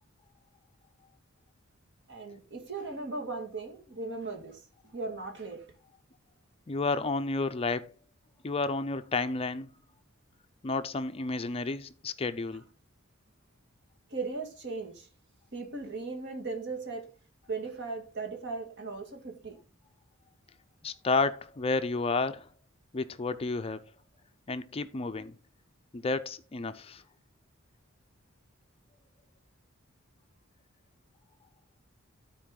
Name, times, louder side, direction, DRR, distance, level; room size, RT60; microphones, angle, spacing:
voice 1, 2.1-4.6 4.9-5.7 14.1-15.1 15.5-17.1 17.5-19.6, right 3 dB, 60° right, 1.9 m, -37 dB
voice 2, 6.7-7.8 8.4-9.7 10.6-12.6 20.8-22.5 22.9-23.8 24.5-25.3 25.9-27.0, left 3 dB, 30° left, 0.4 m, -31 dB
13.0 x 4.4 x 3.8 m
head